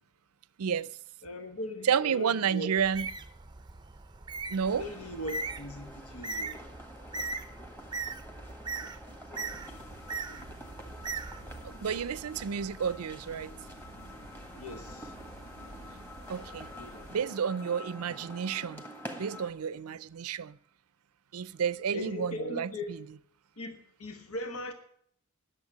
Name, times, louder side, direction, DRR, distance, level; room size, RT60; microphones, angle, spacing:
voice 1, 0.6-0.9 1.8-3.1 4.5-4.9 11.6-13.5 16.3-16.7 17.1-18.9 19.2-20.6 21.3-23.0, right 7 dB, 80° right, 0.5 m, -31 dB
voice 2, 1.2-2.7 3.0-3.1 4.7-6.6 8.8-9.2 14.5-15.2 16.7-17.1 19.9-20.0 21.9-23.0 23.6-24.7, left 1 dB, 85° left, 1.4 m, -40 dB
Bird, 2.8-11.9, right 3 dB, 20° right, 0.5 m, -40 dB
sound 1, 4.6-19.5, equal, 10° left, 1.6 m, -48 dB
sound 2, 9.5-17.1, right 1 dB, 65° left, 1.8 m, -50 dB
11.0 x 7.0 x 9.5 m
head